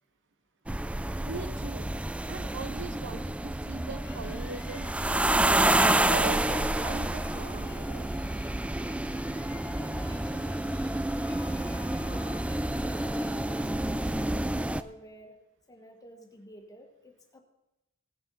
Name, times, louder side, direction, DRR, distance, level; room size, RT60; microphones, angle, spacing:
sound 1, 0.7-14.8, right 1 dB, 5° right, 0.3 m, -29 dB
voice 1, 1.3-1.9 2.3-4.9 6.1-8.1, right 3 dB, 60° right, 11 dB, 0.7 m, -40 dB
sound 2, 4.0-13.6, left 6 dB, 50° left, 1.1 m, -52 dB
voice 2, 9.8-10.7 11.5-12.5 12.8-15.4 15.7-17.4, equal, 15° left, 4 dB, 1.7 m, -50 dB
17.0 x 7.2 x 5.6 m, 0.92 s
head